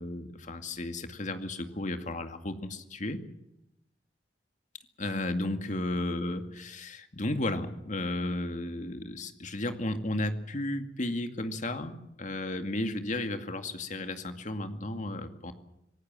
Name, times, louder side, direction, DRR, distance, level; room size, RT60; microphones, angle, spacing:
voice 1, 0.0-3.2 5.0-15.5, left 1 dB, 45° left, 7 dB, 2.3 m, -34 dB
26.0 x 18.0 x 7.5 m, 0.85 s
head